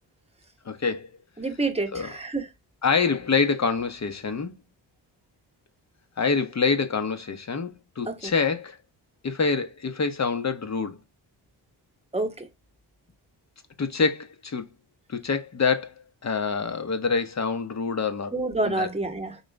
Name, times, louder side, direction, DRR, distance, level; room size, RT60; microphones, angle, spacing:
voice 1, 0.6-1.1 1.9-2.1 2.8-4.5 6.2-8.8 9.2-11.0 13.8-14.7 15.1-18.3 18.6-18.9, left 5 dB, 35° left, 0.9 m, -26 dB
voice 2, 1.4-2.5 8.1-8.3 12.1-12.5 18.3-19.4, right 2 dB, 10° right, 1.2 m, -28 dB
4.0 x 3.0 x 3.3 m
supercardioid pair, 50°, 48 cm